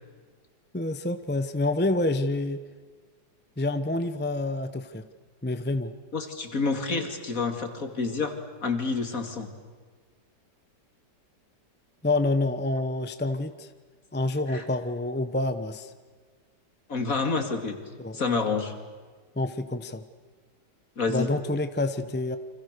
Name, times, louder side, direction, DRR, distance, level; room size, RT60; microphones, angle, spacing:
voice 1, 0.7-2.6 3.6-5.0 5.4-5.9 12.0-13.7 14.1-15.9 18.0-18.2 19.4-20.0 21.1-22.4, left 2 dB, 10° left, 10 dB, 0.6 m, -27 dB
voice 2, 6.1-8.3 8.6-9.5 14.5-14.6 16.9-17.8 18.1-18.7 21.0-21.3, left 4 dB, 50° left, 6 dB, 2.9 m, -28 dB
29.5 x 25.5 x 6.8 m, 1.5 s
omnidirectional pair, 1.9 m